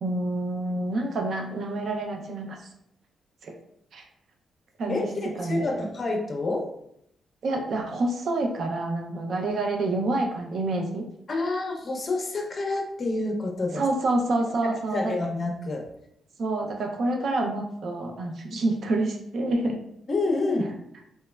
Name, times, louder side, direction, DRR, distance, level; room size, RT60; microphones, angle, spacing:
voice 1, 0.0-2.6 3.4-3.5 3.9-4.0 4.8-5.1 5.4-5.8 7.4-11.0 13.7-15.1 16.4-19.8, right 2 dB, 65° right, 2 dB, 0.4 m, -27 dB
voice 2, 4.9-6.7 11.3-13.8 14.9-15.8 20.1-20.7, left 2 dB, 40° left, 1 dB, 0.5 m, -28 dB
3.1 x 2.0 x 2.2 m, 0.75 s
cardioid pair, 85°, 0 cm